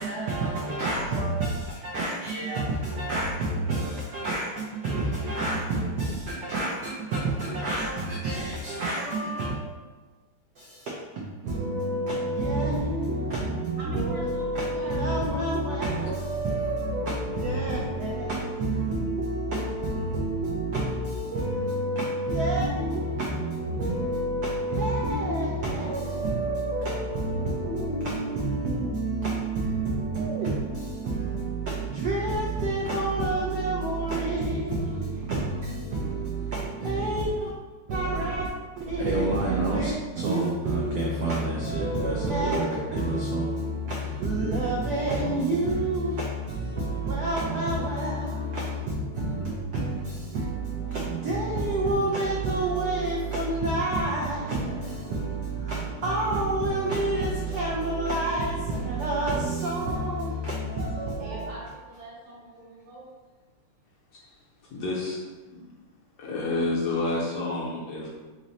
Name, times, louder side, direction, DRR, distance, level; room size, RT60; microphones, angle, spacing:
voice 1, 0.0-9.5 10.6-37.5 37.9-38.5 38.8-61.5, right 2 dB, 85° right, -3 dB, 0.9 m, -28 dB
voice 2, 13.8-15.5 61.2-63.1, right 1 dB, 65° right, -5 dB, 1.7 m, -43 dB
voice 3, 64.7-65.2 65.5-65.6 66.2-68.1, left 2 dB, 65° left, -5 dB, 1.0 m, -29 dB
3.8 x 2.0 x 3.9 m, 1.3 s
omnidirectional pair, 2.3 m